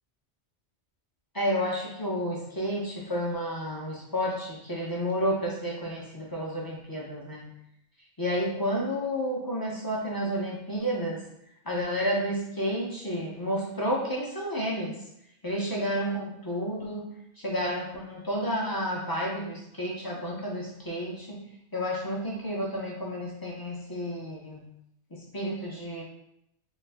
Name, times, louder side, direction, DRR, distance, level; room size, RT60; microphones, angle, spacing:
voice 1, 1.3-7.5 8.2-11.2 11.6-14.9 15.4-17.1 17.4-21.4 21.7-24.7 25.1-26.0, equal, 30° left, -3 dB, 0.4 m, -31 dB
3.1 x 2.4 x 3.3 m, 0.78 s
omnidirectional pair, 1.1 m